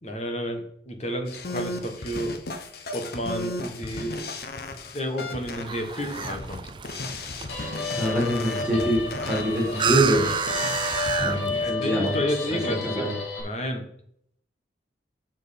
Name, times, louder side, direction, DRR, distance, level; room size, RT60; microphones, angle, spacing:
voice 1, 0.0-2.4 2.9-4.2 4.9-6.7 11.6-13.1 13.4-13.9, equal, 35° left, 4 dB, 1.4 m, -31 dB
sound 1, 1.3-11.2, left 2 dB, 55° left, 1.0 m, -35 dB
sound 2, 5.3-11.7, right 7 dB, 25° right, 0.3 m, -31 dB
Guitar, 7.5-13.4, left 3 dB, 75° left, 2.3 m, -32 dB
voice 2, 8.0-10.3 11.2-12.1 12.8-13.1, equal, 5° right, -4 dB, 2.7 m, -24 dB
6.8 x 6.4 x 5.2 m, 0.68 s
head